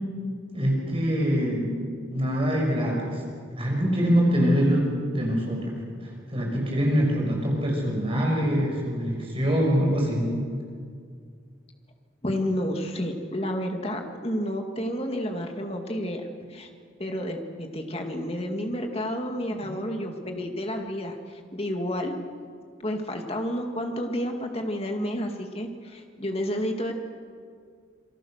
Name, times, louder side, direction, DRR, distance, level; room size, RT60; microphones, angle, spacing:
voice 1, 0.5-1.8 2.1-3.2 3.6-4.9 5.1-5.7 6.0-10.3 19.6-19.7, equal, 30° right, -1 dB, 6.2 m, -24 dB
voice 2, 12.2-16.7 17.0-22.2 22.8-26.9, equal, 30° left, 3 dB, 2.3 m, -30 dB
27.5 x 23.5 x 6.6 m, 2.1 s
head